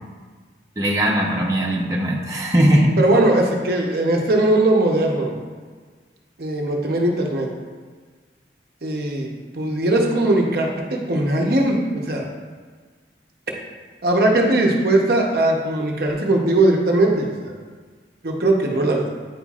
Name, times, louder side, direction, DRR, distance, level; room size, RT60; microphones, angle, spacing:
voice 1, 0.8-2.9, right 1 dB, 20° right, -3 dB, 0.8 m, -19 dB
voice 2, 3.0-5.3 6.4-7.5 8.8-12.3 14.0-17.6 18.2-19.1, right 1 dB, 60° right, 0 dB, 0.8 m, -19 dB
9.1 x 5.7 x 2.4 m, 1.5 s
head